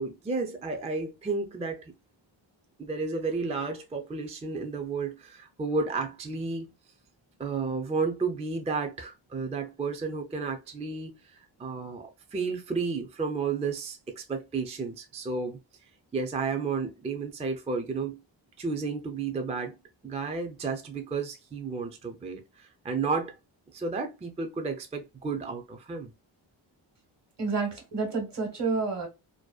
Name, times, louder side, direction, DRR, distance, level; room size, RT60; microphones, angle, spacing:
voice 1, 0.0-1.9 2.8-6.7 7.4-15.6 16.1-18.2 18.6-19.8 20.0-23.3 23.7-26.1, right 4 dB, 15° right, 0.4 m, -32 dB
voice 2, 27.4-29.1, right 4 dB, 60° right, 1.2 m, -29 dB
2.6 x 2.1 x 2.2 m
wide cardioid pair, 90°, 47 cm